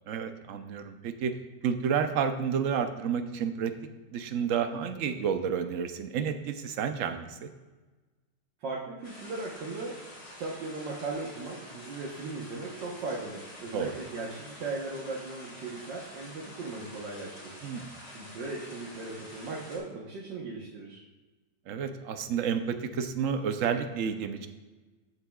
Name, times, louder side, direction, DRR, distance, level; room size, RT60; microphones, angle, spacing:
voice 1, 0.1-1.3 1.6-3.7 4.1-7.5 13.7-13.9 17.6-17.9 21.7-24.5, right 7 dB, 60° right, 8 dB, 0.9 m, -30 dB
voice 2, 8.6-10.0 10.4-17.6 18.1-21.0, right 3 dB, 85° right, -4 dB, 1.9 m, -38 dB
sound 1, 9.0-19.8, left 1 dB, 85° left, 3.9 m, -48 dB
13.5 x 8.3 x 2.3 m, 1.2 s
omnidirectional pair, 1.9 m